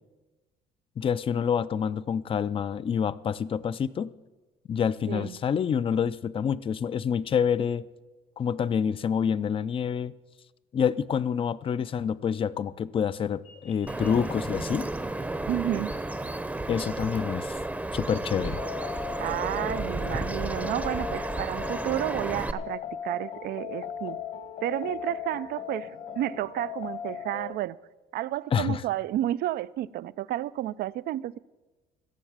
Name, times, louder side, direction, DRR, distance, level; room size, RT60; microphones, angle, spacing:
voice 1, 1.0-4.1 4.7-7.9 8.4-10.1 10.7-14.9 16.7-17.6 17.9-18.6 28.5-28.8, left 7 dB, 30° left, 0.4 m, -27 dB
voice 2, 5.1-5.4 15.5-15.9 19.2-24.2 24.6-25.9 26.2-27.8 28.1-31.4, right 14 dB, 65° right, 0.4 m, -31 dB
sound 1, 13.4-18.4, left 2 dB, 85° left, 4.2 m, -59 dB
Bird vocalization bird call bird song, 13.9-22.5, right 2 dB, 10° right, 0.7 m, -32 dB
sound 2, 18.5-27.5, left 9 dB, 55° left, 1.4 m, -38 dB
16.5 x 7.1 x 7.3 m
cardioid pair, 110°, 17 cm